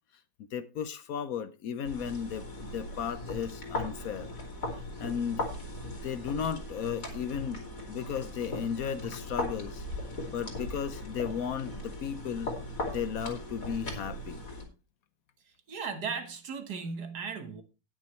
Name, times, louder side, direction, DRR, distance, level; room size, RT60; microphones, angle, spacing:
voice 1, 0.5-4.3 4.7-5.4 5.9-9.8 10.3-12.5 12.9-14.4, left 8 dB, 65° left, 0.9 m, -35 dB
sound 1, 1.8-14.7, left 1 dB, 45° left, 3.2 m, -38 dB
voice 2, 15.7-17.6, right 5 dB, 60° right, 1.8 m, -36 dB
18.5 x 6.3 x 3.1 m
omnidirectional pair, 2.0 m